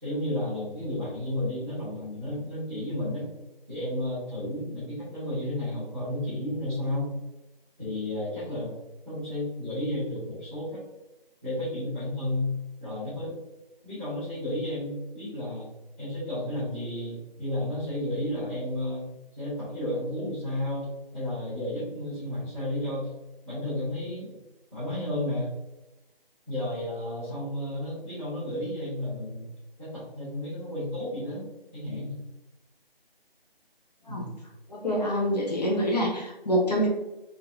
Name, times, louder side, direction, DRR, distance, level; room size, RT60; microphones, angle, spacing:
voice 1, 0.0-3.3 3.7-7.1 7.8-8.7 9.0-10.8 11.4-12.5 12.8-13.3 13.8-15.6 16.0-23.1 23.4-24.4 24.7-25.5 26.5-29.5 29.8-31.5 31.7-32.2 34.1-34.4, left 1 dB, ahead, -21 dB, 1.0 m, -32 dB
voice 2, 34.7-36.9, equal, 45° left, -3 dB, 1.1 m, -26 dB
3.9 x 3.8 x 2.7 m, 1.0 s
figure-of-eight pair, 160°, 30 cm